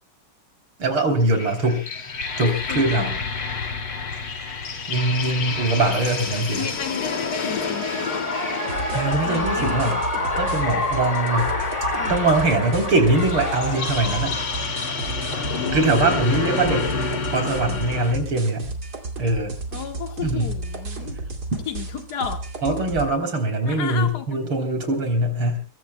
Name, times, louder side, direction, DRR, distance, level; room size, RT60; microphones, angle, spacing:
voice 1, 0.8-1.8 2.4-3.1 4.9-6.6 8.9-10.0 10.4-11.5 12.1-14.3 15.7-16.9 17.3-18.7 19.2-19.5 20.2-20.5 22.6-25.6, right 2 dB, 75° right, 5 dB, 4.5 m, -22 dB
sound 1, 1.2-18.1, left 4 dB, 80° left, 3.3 m, -29 dB
voice 2, 2.4-3.1 6.5-7.9 9.2-10.0 12.0-12.2 15.5-16.9 19.7-21.2 21.7-22.5 23.6-24.5, left 8 dB, 50° left, 5 dB, 2.2 m, -33 dB
Shout / Cheering, 7.4-16.3, left 2 dB, 15° left, 2.7 m, -29 dB
sound 2, 8.7-23.1, right 3 dB, 50° right, 2.9 m, -32 dB
23.5 x 23.0 x 2.2 m, 0.34 s
omnidirectional pair, 2.3 m